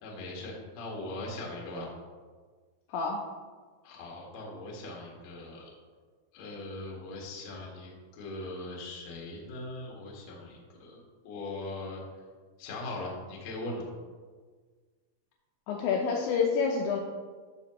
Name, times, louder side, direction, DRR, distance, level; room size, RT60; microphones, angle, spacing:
voice 1, 0.0-1.9 3.8-5.7 6.3-12.0 12.6-13.8, left 2 dB, 65° left, -2 dB, 1.7 m, -40 dB
voice 2, 15.7-17.0, left 5 dB, 80° left, 0 dB, 2.7 m, -28 dB
14.5 x 5.9 x 3.0 m, 1.5 s
omnidirectional pair, 5.9 m